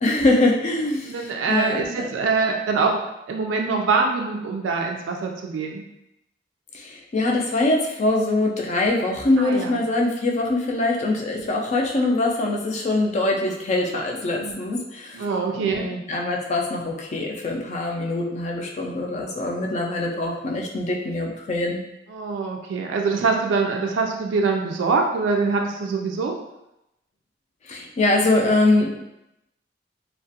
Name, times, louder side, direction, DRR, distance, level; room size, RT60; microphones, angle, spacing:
voice 1, 0.0-1.2 1.5-2.1 6.7-15.2 15.6-21.8 27.7-29.1, left 2 dB, 40° left, 0 dB, 0.4 m, -23 dB
voice 2, 1.1-3.0 3.3-5.8 9.4-9.8 11.4-11.6 14.4-14.6 15.1-15.9 22.1-26.3, right 4 dB, 90° right, 1 dB, 0.3 m, -24 dB
2.4 x 2.1 x 2.6 m, 0.87 s
head